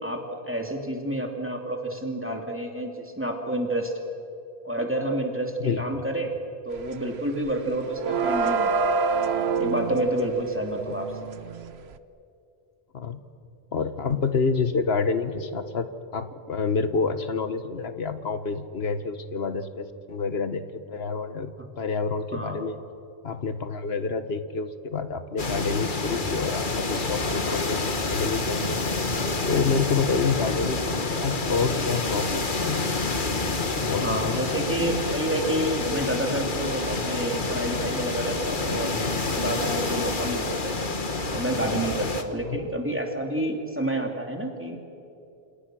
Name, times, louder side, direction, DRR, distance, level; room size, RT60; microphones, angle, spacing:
voice 1, 0.0-3.9 4.6-6.3 6.6-9.0 9.6-11.3 21.6-21.7 22.3-22.7 29.5-29.9 34.0-38.9 39.3-40.8 41.3-44.9, right 1 dB, 10° right, 2 dB, 2.9 m, -29 dB
voice 2, 5.6-6.0 10.9-11.0 12.9-13.2 13.7-15.9 16.1-22.8 23.2-28.9 29.5-33.1 33.6-34.4 42.4-42.6, left 5 dB, 75° left, 10 dB, 1.5 m, -28 dB
sound 1, 6.8-7.0 7.3-11.9, right 4 dB, 80° right, 1.1 m, -27 dB
sound 2, 25.4-42.2, left 3 dB, 50° left, 1.7 m, -28 dB
28.0 x 27.5 x 6.3 m, 2.6 s
omnidirectional pair, 1.1 m